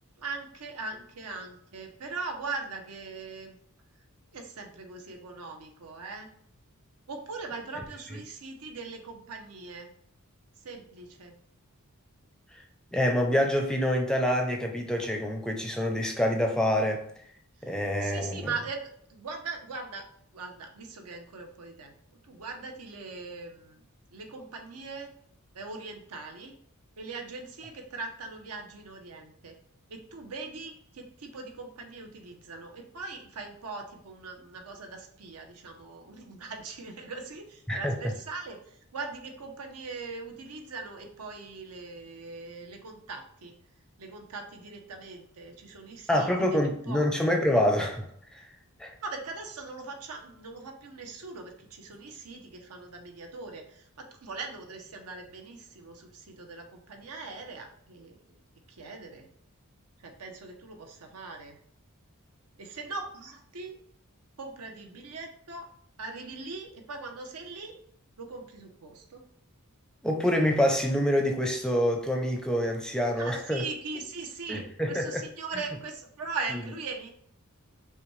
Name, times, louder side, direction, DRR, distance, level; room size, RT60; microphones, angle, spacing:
voice 1, 0.2-3.6 4.3-6.3 7.1-9.9 10.6-11.3 17.6-17.7 18.0-18.8 19.1-20.1 20.3-21.9 22.2-23.8 24.1-25.1 25.5-26.6 27.0-29.6 29.9-43.5 44.0-47.0 49.0-58.4 58.7-59.3 60.0-61.6 62.6-63.8 64.4-65.7 66.0-67.7 68.2-69.2 73.2-77.1, right 4 dB, 85° right, 3 dB, 0.8 m, -40 dB
voice 2, 12.9-17.1 17.7-18.5 37.7-37.9 46.1-48.0 48.3-48.4 48.8-48.9 70.0-73.6 74.5-75.2, equal, 5° left, 2 dB, 0.4 m, -26 dB
5.7 x 2.3 x 3.1 m, 0.66 s
head